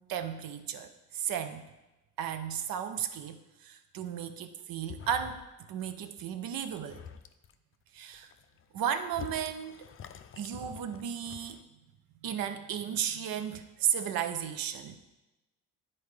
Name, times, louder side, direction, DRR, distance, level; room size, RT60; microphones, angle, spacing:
voice 1, 0.0-1.6 2.2-7.0 7.9-8.3 8.7-9.8 10.4-11.6 12.2-14.9, right 9 dB, 70° right, 9 dB, 0.7 m, -34 dB
sound 1, 4.8-5.5 5.8-6.2 6.6-7.5 8.1-11.6, left 8 dB, 35° left, 0.5 m, -47 dB
10.5 x 4.3 x 3.3 m, 1.0 s
supercardioid pair, 70°, 36 cm